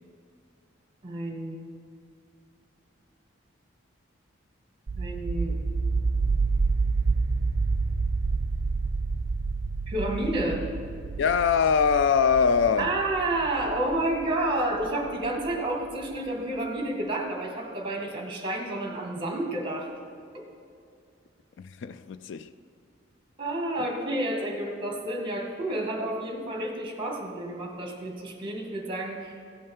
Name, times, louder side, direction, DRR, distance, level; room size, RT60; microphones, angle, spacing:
voice 1, 1.0-1.6 5.0-5.6 9.9-10.6 12.8-19.9 23.4-29.4, right 1 dB, 25° right, 1.8 m, -30 dB
sound 1, 4.9-15.6, right 4 dB, 60° right, 0.5 m, -29 dB
voice 2, 11.2-13.0 21.6-22.5, left 6 dB, 65° left, 0.3 m, -23 dB
16.0 x 5.5 x 5.5 m
head